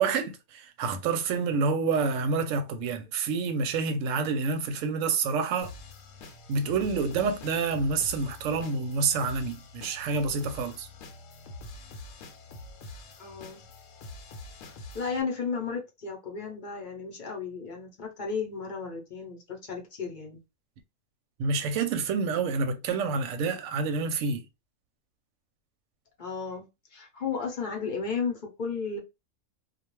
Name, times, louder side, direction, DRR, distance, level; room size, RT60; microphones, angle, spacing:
voice 1, 0.0-5.7 6.5-10.9 21.4-24.4, right 4 dB, 70° right, 0.9 m, -28 dB
sound 1, 5.6-15.2, left 2 dB, 70° left, 0.9 m, -45 dB
voice 2, 13.2-13.6 14.9-20.4 26.2-29.0, left 5 dB, 45° left, 0.7 m, -34 dB
2.3 x 2.2 x 3.0 m
omnidirectional pair, 1.5 m